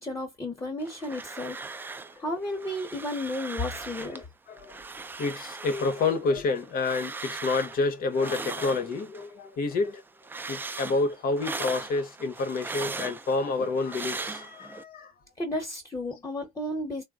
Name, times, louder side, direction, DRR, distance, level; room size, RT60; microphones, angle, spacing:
voice 1, 0.0-1.6 2.2-4.3 15.4-17.0, left 1 dB, 20° left, 1.0 m, -33 dB
sound 1, 0.8-2.2 2.4-4.2 4.6-9.3 9.7-14.8, right 3 dB, 10° right, 0.3 m, -39 dB
voice 2, 4.0-4.8 5.2-10.0 10.5-15.1, left 3 dB, 60° left, 0.9 m, -29 dB
3.5 x 2.2 x 2.3 m
cardioid pair, 110°, 17 cm